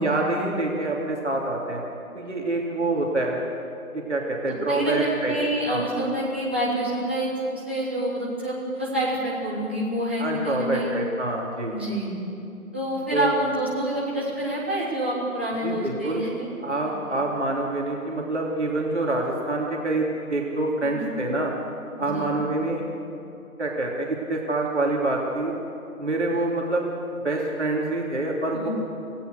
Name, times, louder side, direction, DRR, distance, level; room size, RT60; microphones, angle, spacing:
voice 1, 0.0-1.8 2.1-3.4 3.9-5.3 5.7-5.9 10.2-11.8 13.1-13.3 15.6-16.2 16.6-21.5 22.0-22.8 23.6-25.5 26.0-26.8 27.2-28.7, right 2 dB, 55° right, -1 dB, 3.0 m, -26 dB
voice 2, 4.4-7.3 7.7-10.9 11.7-12.1 12.7-16.5 20.8-21.1 22.0-22.3 28.5-28.7, right 1 dB, 10° right, -8 dB, 1.3 m, -27 dB
27.5 x 16.0 x 6.6 m, 2.7 s
figure-of-eight pair, 175°, 42 cm